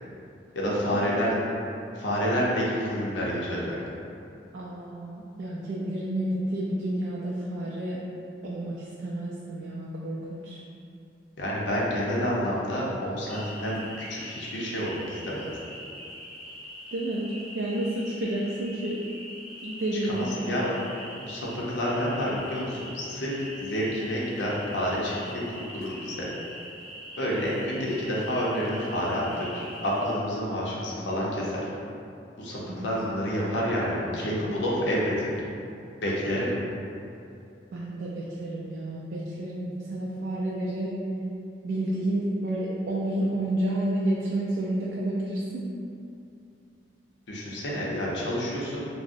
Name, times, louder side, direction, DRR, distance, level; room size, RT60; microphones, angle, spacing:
voice 1, 0.5-1.3 2.0-3.8 11.4-15.5 20.1-20.7 21.2-26.3 27.2-31.7 32.4-35.3 36.0-36.5 47.3-48.8, equal, 80° left, -5 dB, 0.6 m, -29 dB
voice 2, 4.5-8.0 8.4-10.6 16.9-19.0 19.6-20.3 32.7-32.9 37.7-40.9 41.6-45.6, right 1 dB, 75° right, -5 dB, 0.3 m, -30 dB
sound 1, 13.3-30.2, equal, 5° left, 0.6 m, -43 dB
3.6 x 2.0 x 2.5 m, 2.6 s
head